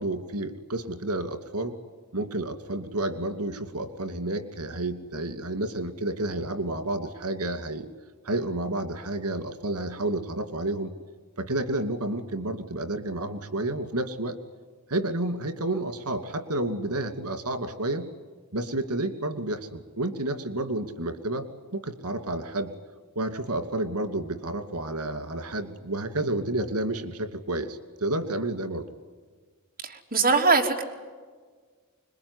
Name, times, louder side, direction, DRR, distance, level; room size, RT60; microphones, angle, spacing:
voice 1, 0.0-1.7 2.1-7.9 8.2-10.9 11.4-14.4 14.9-18.1 18.5-22.7 23.2-28.9, right 2 dB, 90° right, 9 dB, 2.6 m, -30 dB
voice 2, 30.1-30.8, right 4 dB, 40° right, 1 dB, 3.2 m, -20 dB
26.0 x 22.0 x 9.8 m, 1.5 s
head